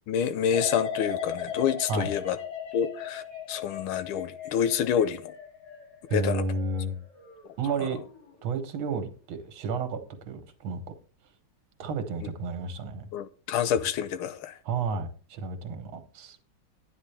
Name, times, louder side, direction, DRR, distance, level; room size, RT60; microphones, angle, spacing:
voice 1, 0.1-2.4 2.7-3.2 3.5-5.3 6.1-6.4 7.8-7.9 13.1-14.5, left 8 dB, 85° left, 1.6 m, -27 dB
sound 1, 0.5-7.5 7.9-8.3, left 7 dB, 55° left, 2.6 m, -37 dB
voice 2, 6.1-7.0 7.6-8.0 8.4-10.8 11.8-13.1 14.7-16.4, right 4 dB, 75° right, 2.0 m, -31 dB
11.0 x 9.7 x 3.4 m
omnidirectional pair, 2.3 m